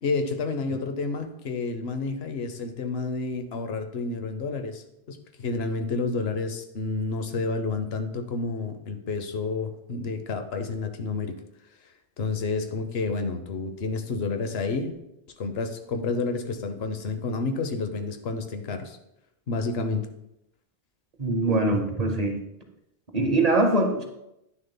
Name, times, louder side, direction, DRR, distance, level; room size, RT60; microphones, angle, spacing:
voice 1, 0.0-11.3 12.2-14.9 15.4-19.0 19.5-20.1, left 3 dB, 80° left, 7 dB, 1.0 m, -30 dB
voice 2, 21.2-22.4 23.1-24.0, right 2 dB, 40° right, 3 dB, 0.9 m, -23 dB
9.5 x 6.4 x 2.2 m, 0.84 s
omnidirectional pair, 1.0 m